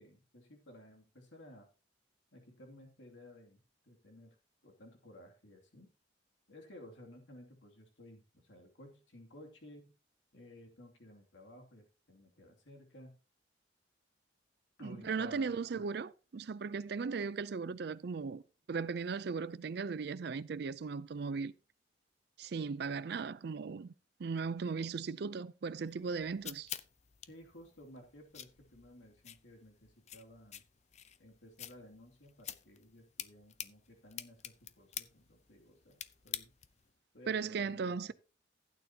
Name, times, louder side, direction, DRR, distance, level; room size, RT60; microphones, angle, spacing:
voice 1, 0.0-1.7 2.3-4.4 4.6-5.9 6.5-9.9 10.3-13.1 14.8-15.8 27.2-30.6 31.2-36.5 37.1-38.1, left 1 dB, 85° left, 2.6 m, -56 dB
voice 2, 14.8-18.4 18.7-21.5 22.4-23.9 24.2-26.7 37.3-38.1, right 5 dB, 60° right, 0.4 m, -37 dB
sound 1, 25.9-36.9, left 10 dB, 35° left, 0.6 m, -48 dB
15.5 x 9.1 x 2.8 m
head